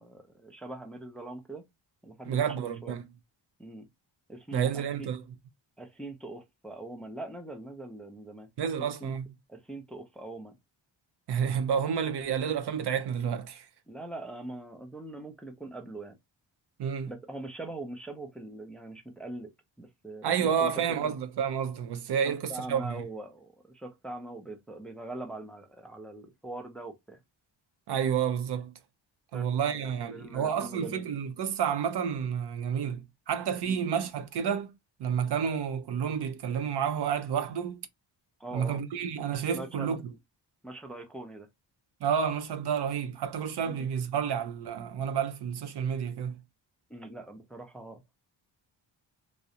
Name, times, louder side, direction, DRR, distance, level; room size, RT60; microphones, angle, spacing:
voice 1, 0.0-1.6 2.0-2.9 3.6-3.9 4.3-5.1 5.8-8.5 8.8-9.1 9.5-10.6 13.9-16.2 17.1-19.5 19.8-20.7 21.0-21.1 22.2-27.2 29.3-29.5 29.7-31.0 33.6-33.9 38.4-38.8 39.5-39.9 40.6-41.5 43.7-43.9 46.9-48.0, right 2 dB, ahead, 0.5 m, -42 dB
voice 2, 2.3-3.0 4.5-5.2 8.6-9.3 11.3-13.7 16.8-17.1 20.2-22.9 27.9-28.7 29.3-34.7 35.0-37.8 38.5-40.0 42.0-46.4, right 7 dB, 60° right, 0.5 m, -30 dB
2.3 x 2.0 x 2.7 m
cardioid pair, 80°, 47 cm